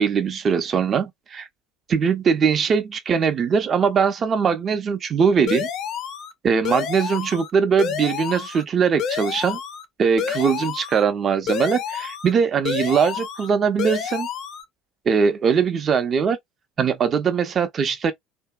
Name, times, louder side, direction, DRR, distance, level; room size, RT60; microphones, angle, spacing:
voice 1, 0.0-1.5 1.9-5.7 6.4-9.6 10.0-14.3 15.1-16.4 16.8-18.1, right 6 dB, 35° right, 0.5 m, -21 dB
sound 1, 5.5-6.3 6.6-7.5 7.8-8.6 9.0-9.8 10.2-11.0 11.5-12.3 12.6-13.5 13.8-14.6, left 8 dB, 50° left, 0.5 m, -29 dB
2.6 x 2.2 x 2.3 m
figure-of-eight pair, 65°, 0 cm